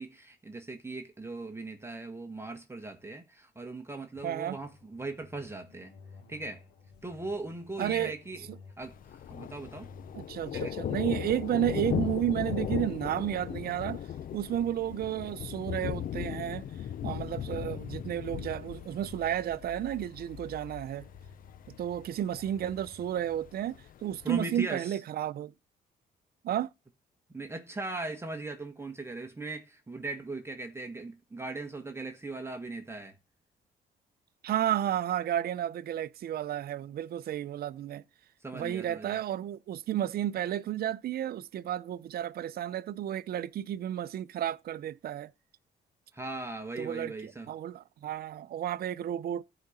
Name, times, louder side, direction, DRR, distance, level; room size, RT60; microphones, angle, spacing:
voice 1, 0.0-5.9 6.3-6.6 7.0-8.5 8.8-9.9 10.5-10.7 24.2-25.0 27.3-33.1 38.4-39.2 46.1-47.5, right 2 dB, 15° right, 1.5 m, -39 dB
sound 1, 4.1-23.1, left 5 dB, 85° left, 1.8 m, -55 dB
voice 2, 4.2-4.6 7.8-8.1 10.1-14.0 14.3-16.7 17.0-21.1 21.7-25.5 26.4-26.7 34.4-38.0 38.5-45.3 46.8-49.4, right 11 dB, 65° right, 0.6 m, -32 dB
Thunder, 8.8-24.4, left 10 dB, 55° left, 0.5 m, -38 dB
14.5 x 5.1 x 4.2 m
cardioid pair, 90°, 17 cm